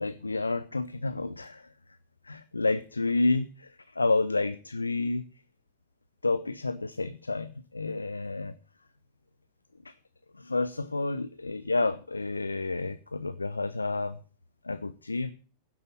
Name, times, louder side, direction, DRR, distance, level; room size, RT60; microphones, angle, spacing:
voice 1, 0.0-1.7 2.2-5.2 6.2-8.5 9.8-9.9 10.3-14.2 14.6-15.3, left 3 dB, 80° left, 13 dB, 0.5 m, -30 dB
10.5 x 7.7 x 7.1 m, 0.39 s
figure-of-eight pair, 90°, 0 cm